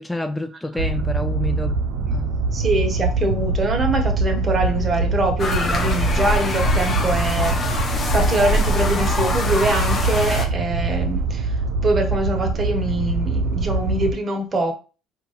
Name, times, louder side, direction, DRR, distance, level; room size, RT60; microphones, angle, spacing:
voice 1, 0.0-2.4, left 1 dB, 10° left, 0.4 m, -29 dB
sound 1, 0.8-14.1, right 3 dB, 75° right, 0.5 m, -23 dB
voice 2, 2.5-11.5 11.8-14.7, right 1 dB, 35° right, 1.4 m, -24 dB
sound 2, 5.4-10.5, left 2 dB, 40° left, 1.1 m, -24 dB
4.2 x 2.6 x 4.2 m
hypercardioid pair, 70°, 0 cm